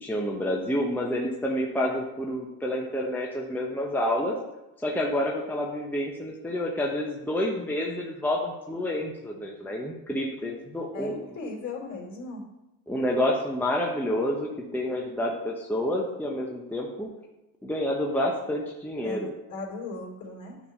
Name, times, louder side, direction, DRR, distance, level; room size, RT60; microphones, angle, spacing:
voice 1, 0.0-4.4 4.8-11.2 12.9-17.1 17.6-19.3, left 1 dB, 5° left, -1 dB, 0.9 m, -29 dB
voice 2, 10.9-12.4 19.0-20.6, left 3 dB, 35° left, -1 dB, 3.0 m, -37 dB
10.0 x 3.5 x 5.5 m, 0.97 s
supercardioid pair, 95°, 49 cm